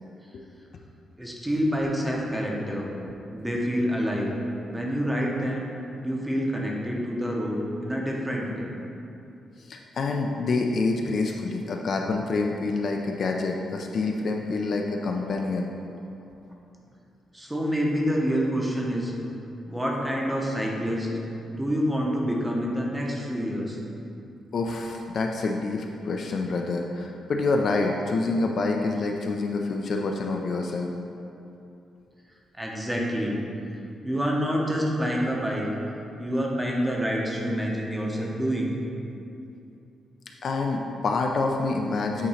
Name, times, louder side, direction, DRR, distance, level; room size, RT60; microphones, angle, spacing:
voice 1, 1.2-2.9 3.3-4.3 4.7-5.7 6.0-8.7 17.3-19.1 19.7-21.1 21.4-23.8 32.6-33.4 34.0-35.7 36.2-38.7, equal, 5° right, -2 dB, 0.6 m, -27 dB
voice 2, 9.6-15.7 24.5-30.9 40.4-42.3, left 3 dB, 40° left, 2 dB, 0.3 m, -27 dB
8.4 x 2.9 x 4.2 m, 2.7 s
wide cardioid pair, 180°, 0 cm